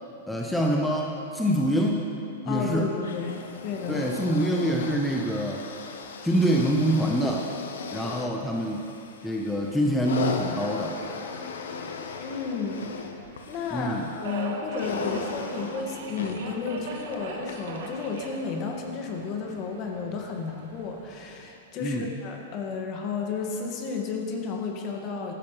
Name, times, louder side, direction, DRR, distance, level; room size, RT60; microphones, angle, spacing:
voice 1, 0.3-2.1 2.4-2.9 3.9-5.6 6.2-7.4 7.9-8.9 9.2-11.0 13.7-14.1 21.8-22.1, equal, 5° left, -1 dB, 0.9 m, -25 dB
voice 2, 2.5-4.1 12.2-12.8 13.5-25.3, left 5 dB, 40° left, 1 dB, 1.8 m, -32 dB
sound 1, 3.0-18.5 19.3-19.4, left 5 dB, 75° left, 1.0 m, -37 dB
Subway metro underground, 9.5-21.5, right 4 dB, 60° right, 1.5 m, -43 dB
14.5 x 12.0 x 3.2 m, 2.8 s
hypercardioid pair, 120°, 0 cm